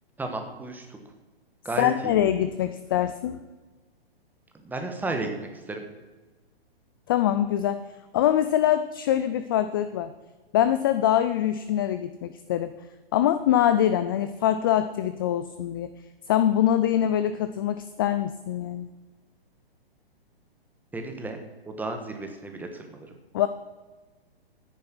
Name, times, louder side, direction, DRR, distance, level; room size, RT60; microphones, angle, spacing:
voice 1, 0.2-1.0 1.6-2.1 4.6-5.3 5.7-5.8 20.9-21.4 21.6-23.1, right 2 dB, 5° right, 4 dB, 1.3 m, -33 dB
voice 2, 1.8-3.4 7.1-7.8 8.1-10.1 10.5-12.7 13.1-15.9 16.3-18.9 23.3-23.5, left 11 dB, 25° left, 11 dB, 0.4 m, -24 dB
13.0 x 10.0 x 6.1 m, 1.3 s
hypercardioid pair, 145°, 30 cm